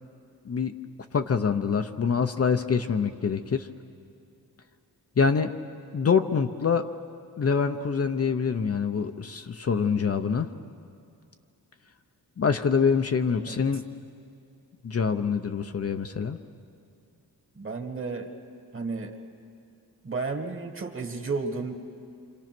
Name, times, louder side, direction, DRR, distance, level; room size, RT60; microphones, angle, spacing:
voice 1, 1.1-3.7 5.2-5.5 5.9-6.9 7.4-10.5 12.4-13.8 14.8-16.4, left 6 dB, 40° left, 7 dB, 0.8 m, -25 dB
voice 2, 17.6-18.3 18.7-19.2 20.0-21.7, right 4 dB, 35° right, 4 dB, 1.9 m, -32 dB
27.5 x 26.5 x 6.1 m, 2.5 s
wide cardioid pair, 130°, 37 cm